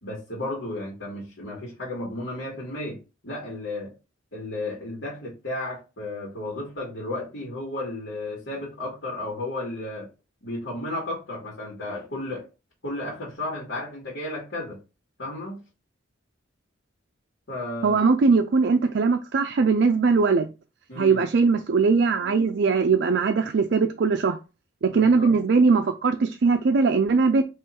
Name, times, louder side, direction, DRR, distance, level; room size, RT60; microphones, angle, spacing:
voice 1, 0.0-3.9 4.3-10.1 10.4-12.4 12.8-14.8 15.2-15.6 17.5-18.0 20.9-21.2 24.9-25.3, left 1 dB, 70° left, 1.9 m, -33 dB
voice 2, 17.8-20.5 21.0-24.4 24.8-27.4, right 4 dB, 60° right, 0.4 m, -20 dB
3.7 x 3.1 x 4.3 m
head